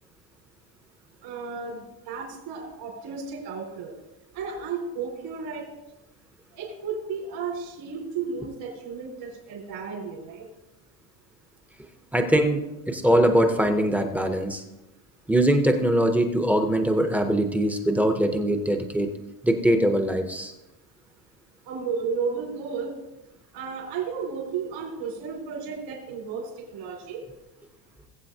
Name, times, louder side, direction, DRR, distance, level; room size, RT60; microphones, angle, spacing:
voice 1, 1.2-3.9 4.3-5.7 6.5-10.5 21.6-22.9 23.5-27.2, right 5 dB, 85° right, -1 dB, 4.8 m, -33 dB
voice 2, 12.1-14.6 15.3-19.1 19.4-20.5, right 1 dB, 5° right, 5 dB, 0.3 m, -22 dB
21.0 x 8.2 x 2.6 m, 0.95 s
cardioid pair, 180°, 46 cm